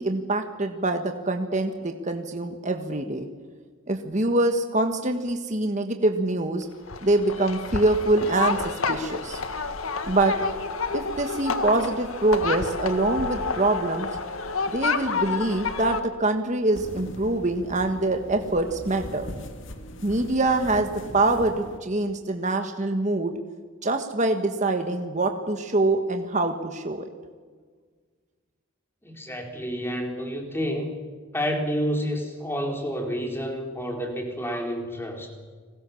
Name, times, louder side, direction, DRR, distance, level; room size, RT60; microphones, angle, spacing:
voice 1, 0.0-3.3 3.9-6.7 7.0-9.4 10.1-10.3 10.9-14.1 14.7-19.3 20.0-23.4 23.8-27.1, right 2 dB, 35° right, 5 dB, 1.5 m, -25 dB
sound 1, 6.9-16.0, left 4 dB, 85° left, 1.8 m, -29 dB
sound 2, 16.7-21.8, left 1 dB, 65° left, 2.4 m, -40 dB
voice 2, 29.0-30.9 31.3-35.3, equal, 10° left, 2 dB, 4.2 m, -29 dB
29.5 x 21.5 x 7.2 m, 1.5 s
head